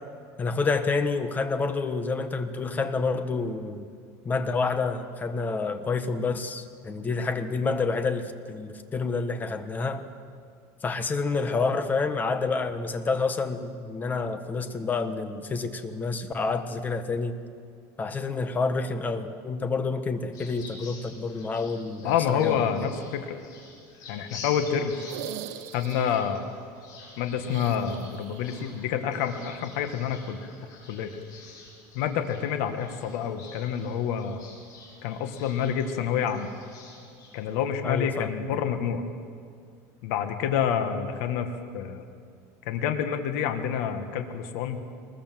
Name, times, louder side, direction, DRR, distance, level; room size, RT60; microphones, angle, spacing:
voice 1, 0.4-3.9 4.2-10.1 10.8-17.4 18.0-22.7 37.8-38.3, left 4 dB, 20° left, 9 dB, 1.4 m, -28 dB
sound 1, 20.3-37.5, left 4 dB, 50° left, 6.9 m, -48 dB
voice 2, 22.0-23.4 24.1-25.0 25.7-26.4 27.2-30.4 30.9-31.1 32.0-34.4 35.0-36.5 37.3-39.0 40.0-42.0 42.7-44.8, left 8 dB, 75° left, 7 dB, 1.8 m, -28 dB
sound 2, 24.9-26.3 27.4-28.6 28.9-29.0 30.6-30.7, right 12 dB, 80° right, 1.0 m, -41 dB
23.0 x 20.5 x 7.7 m, 2.3 s
supercardioid pair, 140°, 8 cm